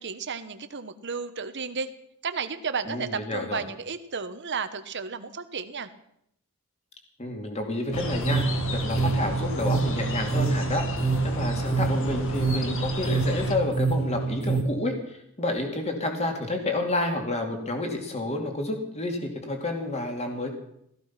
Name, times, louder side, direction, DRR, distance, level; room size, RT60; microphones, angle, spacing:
voice 1, 0.0-1.9 2.2-5.9, right 5 dB, 55° right, 11 dB, 1.2 m, -33 dB
voice 2, 2.8-3.6 7.2-8.4 8.7-10.8 11.2-20.5, left 2 dB, 30° left, 3 dB, 2.6 m, -30 dB
sound 1, 7.9-13.5, left 2 dB, 60° left, 1.9 m, -34 dB
sound 2, 7.9-14.6, right 4 dB, 5° left, 2.6 m, -27 dB
16.5 x 14.5 x 5.9 m, 0.75 s
head